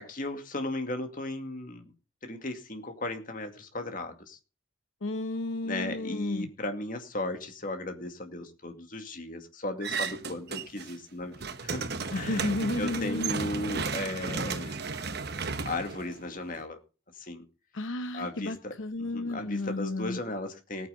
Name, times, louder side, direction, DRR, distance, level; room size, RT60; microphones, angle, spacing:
voice 1, 0.0-1.9 2.2-4.4 5.6-12.5 12.8-14.8 15.6-16.8 17.2-17.4 18.1-20.9, left 2 dB, 40° left, 6 dB, 2.3 m, -36 dB
voice 2, 5.0-6.5 12.1-13.4 17.7-20.2, left 2 dB, 70° left, 9 dB, 0.9 m, -33 dB
sound 1, 9.8-10.9 11.2-16.6, right 4 dB, 50° right, 1.1 m, -34 dB
19.0 x 9.2 x 4.0 m, 0.32 s
head